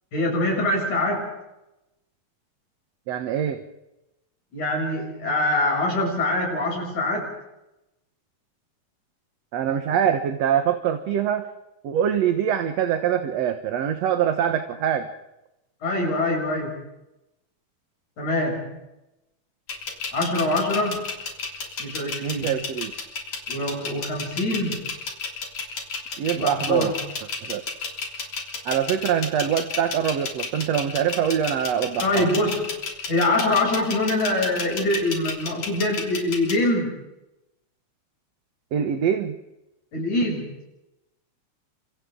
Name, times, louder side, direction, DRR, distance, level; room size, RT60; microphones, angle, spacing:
voice 1, 0.1-1.3 4.5-7.3 15.8-16.8 18.2-18.8 20.1-21.1 21.8-22.5 23.5-24.9 26.3-27.0 32.0-32.7 33.1-37.0 39.9-40.6, left 1 dB, 85° left, -1 dB, 8.9 m, -24 dB
voice 2, 3.1-3.6 9.5-11.5 11.8-15.1 22.2-22.9 26.2-26.9 27.4-27.6 28.7-32.3 38.7-39.3, right 9 dB, 65° right, 6 dB, 2.3 m, -24 dB
sound 1, 19.7-36.6, left 4 dB, 65° left, 4.5 m, -32 dB
30.0 x 26.5 x 3.9 m, 0.92 s
omnidirectional pair, 3.3 m